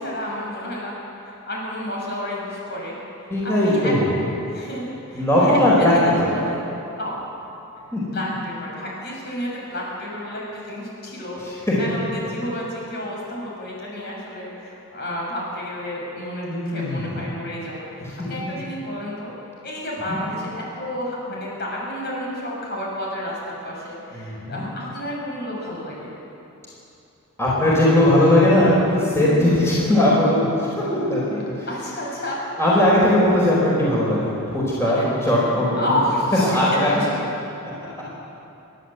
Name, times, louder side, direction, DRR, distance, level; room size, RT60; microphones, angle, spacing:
voice 1, 0.0-4.0 4.5-6.6 7.0-7.2 8.1-19.3 19.6-26.2 29.2-29.5 31.7-32.8 34.8-35.2 35.8-36.8, left 1 dB, 45° left, -3 dB, 6.4 m, -30 dB
voice 2, 3.3-4.1 5.1-5.9 6.2-6.3 7.9-8.0 11.7-11.8 16.4-17.0 24.1-24.6 27.4-30.5 30.8-31.7 32.6-35.9 36.4-36.9, left 1 dB, 10° left, -6 dB, 4.6 m, -19 dB
29.5 x 11.5 x 8.0 m, 2.8 s
head